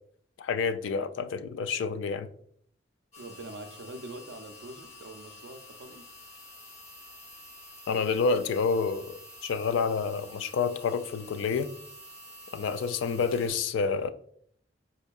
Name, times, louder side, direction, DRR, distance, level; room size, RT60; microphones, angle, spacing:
voice 1, 0.4-2.3 7.9-9.1 9.4-11.7 12.5-14.1, left 5 dB, 85° left, 0.3 m, -28 dB
sound 1, 3.1-13.5, left 1 dB, 35° left, 0.8 m, -49 dB
voice 2, 3.2-6.0, right 2 dB, 70° right, 0.4 m, -44 dB
4.4 x 2.6 x 2.3 m
head